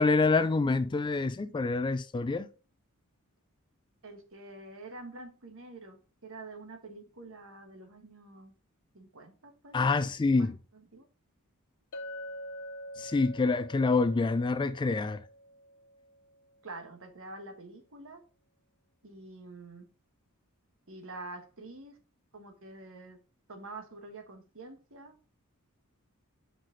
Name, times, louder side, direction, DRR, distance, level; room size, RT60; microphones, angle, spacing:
voice 1, 0.0-2.5 9.7-10.6 13.0-15.2, left 3 dB, 20° left, 0.3 m, -26 dB
voice 2, 4.0-8.5 8.9-11.1 16.6-18.2 19.0-19.9 20.9-22.0 22.3-23.2 23.5-25.1, right 2 dB, 65° right, 1.4 m, -47 dB
Chink clink, 11.9-16.4, equal, 85° left, 0.7 m, -45 dB
5.8 x 5.2 x 3.8 m
head